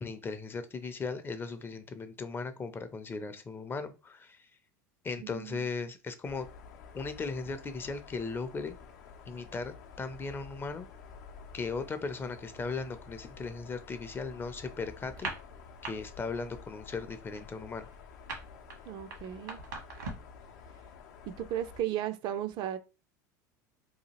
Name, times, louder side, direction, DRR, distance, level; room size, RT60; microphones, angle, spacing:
voice 1, 0.0-4.4 5.0-6.5 6.9-8.8 9.3-10.9 11.5-15.3 15.8-17.9, left 4 dB, 25° left, 0.4 m, -37 dB
voice 2, 5.2-5.7 18.9-19.6 21.3-22.8, right 11 dB, 50° right, 0.4 m, -35 dB
sound 1, 6.2-21.8, left 5 dB, 75° left, 0.6 m, -51 dB
sound 2, 15.1-15.9 16.2-16.5 16.8-20.4, right 3 dB, 85° right, 1.1 m, -40 dB
2.8 x 2.4 x 2.8 m
hypercardioid pair, 90°, 10 cm